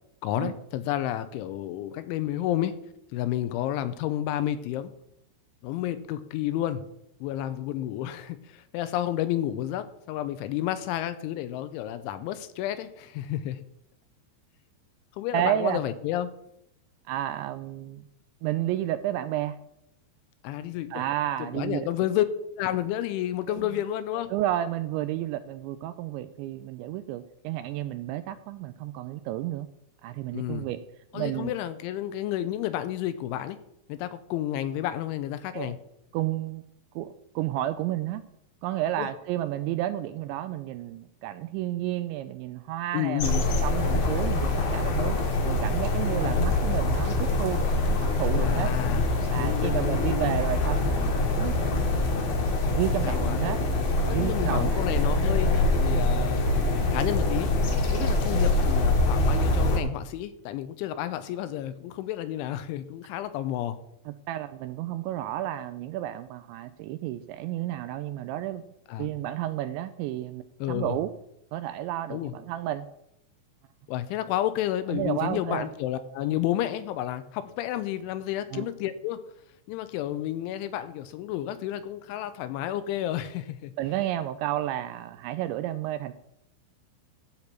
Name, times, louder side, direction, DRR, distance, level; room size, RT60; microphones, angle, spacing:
voice 1, 0.2-2.7 3.1-4.9 5.6-6.8 7.2-13.6 15.2-16.3 20.4-21.0 21.4-22.3 22.6-24.3 30.3-30.7 31.1-33.6 33.9-35.8 39.0-39.1 42.9-43.5 48.4-50.3 53.0-53.4 54.1-57.5 57.9-63.8 68.9-69.1 70.6-71.0 72.1-72.3 73.9-79.2 79.7-83.7, left 12 dB, 85° left, 12 dB, 3.0 m, -31 dB
voice 2, 15.3-15.8 17.1-18.0 18.4-19.6 20.9-21.9 23.5-23.7 24.3-29.7 30.0-30.8 31.1-31.5 35.5-35.8 36.1-36.6 37.0-38.2 38.6-45.2 45.4-48.7 49.3-52.1 52.7-53.6 54.0-54.8 64.1-68.6 69.0-70.4 70.7-71.1 71.5-72.9 74.9-75.7 78.5-78.7 83.8-86.1, right 13 dB, 85° right, 11 dB, 2.7 m, -31 dB
sound 1, 43.2-59.8, left 2 dB, 55° left, 3.1 m, -24 dB
13.0 x 4.5 x 8.2 m, 0.78 s
omnidirectional pair, 5.6 m